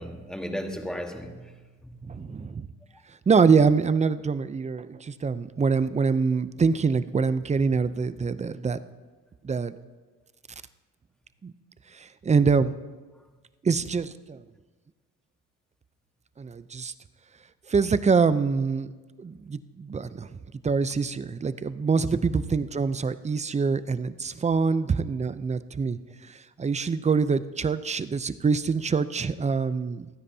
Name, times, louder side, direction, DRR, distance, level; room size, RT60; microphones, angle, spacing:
voice 1, 0.0-1.5 1.8-2.3 22.0-22.2, equal, ahead, 4 dB, 1.4 m, -36 dB
voice 2, 2.1-2.7 3.3-8.8 9.4-9.8 11.4-11.5 11.9-12.7 13.6-14.4 16.4-16.9 17.7-18.9 19.2-20.3 20.6-26.0 26.3-30.1, right 5 dB, 25° right, 14 dB, 0.5 m, -25 dB
28.0 x 9.8 x 2.8 m, 1.3 s
cardioid pair, 90°, 30 cm